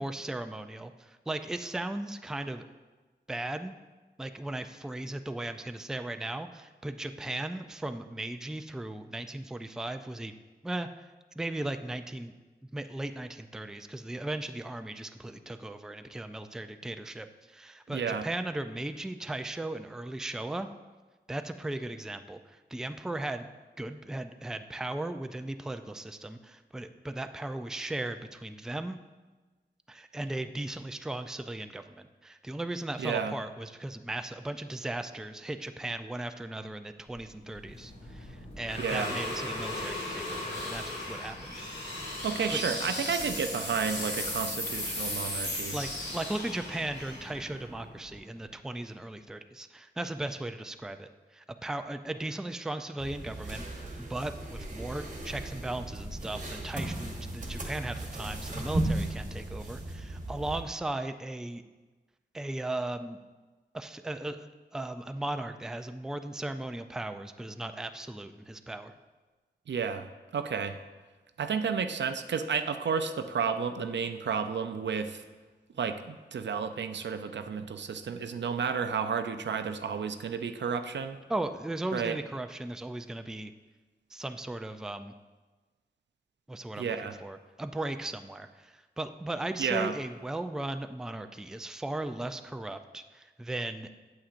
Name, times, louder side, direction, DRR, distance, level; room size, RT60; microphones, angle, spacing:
voice 1, 0.0-2.6 3.3-3.7 4.2-10.4 10.6-11.1 11.4-12.3 12.7-20.7 21.3-23.5 23.8-29.0 29.9-41.6 42.5-42.6 45.7-61.6 62.3-63.2 63.7-68.9 81.3-83.5 84.1-85.1 86.5-87.0 87.2-93.9, right 2 dB, 5° right, 8 dB, 0.3 m, -37 dB
voice 2, 17.9-18.2 33.0-33.3 38.8-39.2 42.2-45.8 69.7-70.1 70.3-70.8 71.4-75.2 75.8-81.2 81.9-82.2 86.8-87.2 89.6-89.9, right 6 dB, 80° right, 9 dB, 0.5 m, -31 dB
Inhale with Reverb, 37.1-48.4, left 1 dB, 70° left, 2.3 m, -36 dB
sound 1, 53.0-60.6, right 1 dB, 45° right, 1.1 m, -36 dB
8.6 x 7.5 x 2.5 m, 1.3 s
wide cardioid pair, 75°, 18 cm